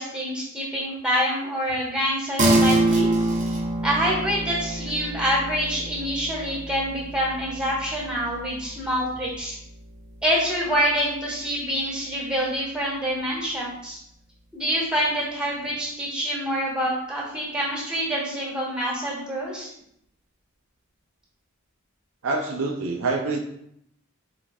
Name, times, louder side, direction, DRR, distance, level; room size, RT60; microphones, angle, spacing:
voice 1, 0.0-3.1 3.8-9.6 10.2-14.0 14.5-19.7, equal, 5° right, -5 dB, 1.4 m, -26 dB
sound 1, 2.4-12.1, right 1 dB, 35° right, 0.7 m, -27 dB
voice 2, 22.2-23.4, right 3 dB, 65° right, 2 dB, 0.5 m, -26 dB
4.6 x 4.0 x 2.4 m, 0.74 s
head